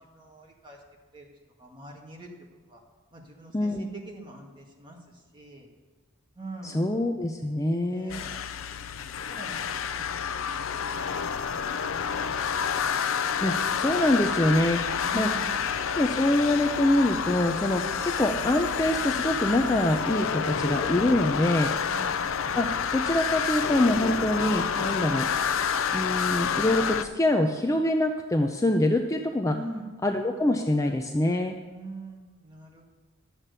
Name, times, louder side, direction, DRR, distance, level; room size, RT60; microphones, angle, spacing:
voice 1, 0.1-0.8 1.1-1.3 1.6-2.3 2.7-2.8 3.1-5.7 6.4-6.9 7.9-8.4 8.9-10.2 10.5-12.9 15.0-15.7 21.9-22.2 24.9-25.2 29.5-30.1 31.7-32.9, right 2 dB, 20° right, -1 dB, 1.8 m, -44 dB
voice 2, 3.5-3.9 6.6-8.2 13.4-15.3 16.0-21.7 22.5-22.7 22.9-25.3 25.9-29.6 30.0-31.6, left 1 dB, 15° left, 4 dB, 0.5 m, -25 dB
sound 1, 8.1-27.0, left 7 dB, 70° left, 0.5 m, -29 dB
12.5 x 7.4 x 6.7 m, 1.4 s
head